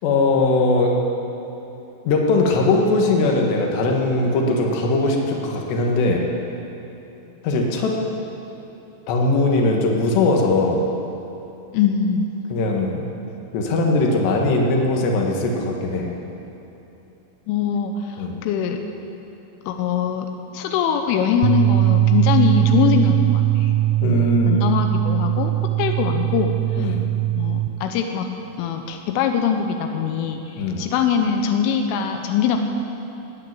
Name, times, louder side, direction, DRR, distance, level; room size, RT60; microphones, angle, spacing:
voice 1, 0.0-1.0 2.0-6.2 7.4-8.0 9.1-10.9 12.5-13.1 13.5-16.1 18.2-18.4 24.0-24.6 26.8-27.0 30.6-30.9, left 2 dB, 70° left, 0 dB, 3.5 m, -20 dB
voice 2, 11.7-12.3 17.5-18.8 19.7-20.3 20.5-23.7 24.0-25.5 25.8-26.9 27.3-28.3 28.6-32.6, left 7 dB, 90° left, 5 dB, 3.4 m, -22 dB
sound 1, 21.4-27.7, right 15 dB, 85° right, 2.6 m, -20 dB
15.5 x 9.3 x 8.9 m, 3.0 s
omnidirectional pair, 5.5 m